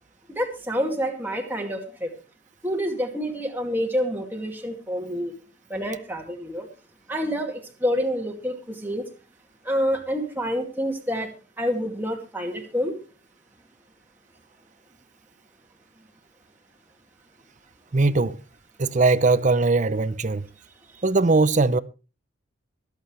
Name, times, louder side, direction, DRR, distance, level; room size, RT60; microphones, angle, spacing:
voice 1, 0.3-2.1 2.6-5.3 5.7-6.7 7.1-9.0 9.6-11.3 11.6-13.0, equal, 10° right, 2.3 m, -27 dB
voice 2, 17.9-18.4 18.8-20.5 21.0-21.8, right 3 dB, 35° right, 0.6 m, -20 dB
23.5 x 8.2 x 3.3 m
head